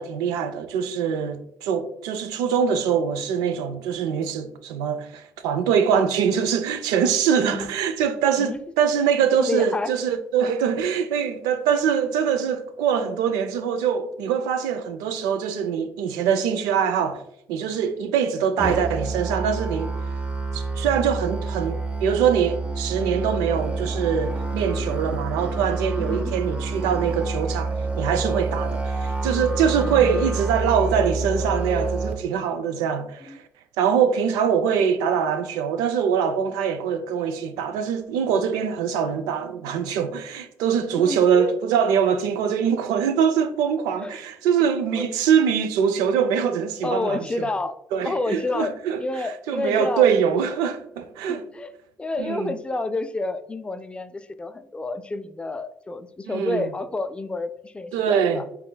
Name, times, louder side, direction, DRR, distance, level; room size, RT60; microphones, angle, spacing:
voice 1, 0.0-17.2 17.5-19.9 20.5-33.4 33.8-47.3 47.9-49.0 49.5-51.4 52.2-52.5 56.2-56.7 57.9-58.4, right 7 dB, 85° right, 0.4 m, -23 dB
voice 2, 9.3-9.9 26.0-26.4 33.3-33.4 40.9-41.6 44.0-44.2 45.0-45.1 46.8-47.8 48.0-48.7 49.0-50.1 51.3-51.7 52.0-58.5, left 2 dB, 15° left, 0.3 m, -29 dB
Musical instrument, 18.6-32.1, right 3 dB, 20° right, 0.7 m, -28 dB
4.2 x 3.7 x 2.2 m
supercardioid pair, 80°, 6 cm